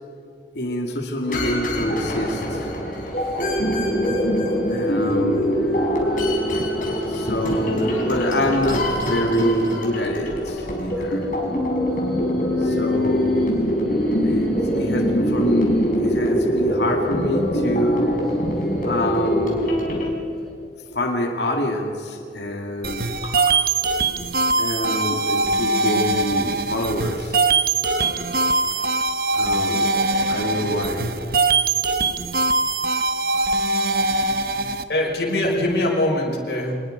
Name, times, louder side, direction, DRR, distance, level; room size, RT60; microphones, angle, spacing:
voice 1, 0.5-2.7 4.7-5.6 6.9-11.3 12.6-13.6 14.2-18.3 18.8-19.8 20.9-23.6 24.6-27.4 29.3-29.9 30.3-31.2, left 1 dB, 85° left, 2 dB, 2.4 m, -26 dB
sound 1, 1.3-20.1, equal, 50° left, 4.9 m, -23 dB
sound 2, 1.8-3.8 4.3-8.8 9.3-16.2 16.8-19.7 20.2-20.5, left 2 dB, ahead, 6.1 m, -33 dB
sound 3, 22.8-34.8, right 3 dB, 55° right, 1.1 m, -22 dB
voice 2, 34.9-36.7, left 1 dB, 70° left, -2 dB, 6.0 m, -22 dB
25.5 x 21.0 x 5.2 m, 2.5 s
head